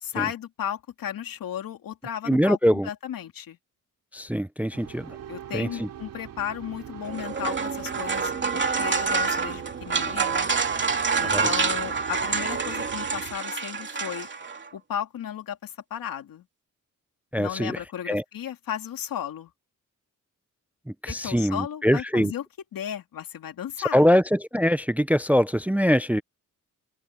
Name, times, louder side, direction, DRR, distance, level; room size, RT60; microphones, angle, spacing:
voice 1, 0.0-2.6 2.8-3.6 5.3-10.5 11.2-14.3 14.7-16.4 17.4-19.5 21.1-22.5 22.7-24.1, left 10 dB, 90° left, 2.7 m, -34 dB
voice 2, 2.3-2.9 4.1-5.2 5.5-5.9 11.3-11.5 17.3-17.8 18.1-18.2 21.0-22.3 23.9-26.2, equal, 5° right, 0.4 m, -23 dB
sound 1, 4.7-13.4, right 10 dB, 85° right, 2.5 m, -41 dB
sound 2, 7.0-14.7, right 5 dB, 35° right, 2.8 m, -27 dB
open air
wide cardioid pair, 120°, 33 cm